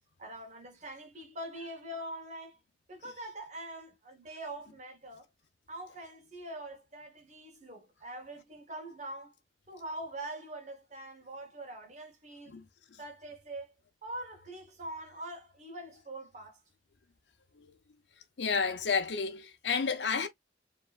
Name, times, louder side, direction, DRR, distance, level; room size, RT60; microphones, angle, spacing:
voice 1, 0.2-2.6 2.9-5.3 5.7-9.3 9.7-12.6 13.0-13.7 14.0-16.6, right 1 dB, 40° right, 1.2 m, -43 dB
voice 2, 18.4-20.3, left 5 dB, 80° left, 0.6 m, -30 dB
4.7 x 3.0 x 2.4 m
head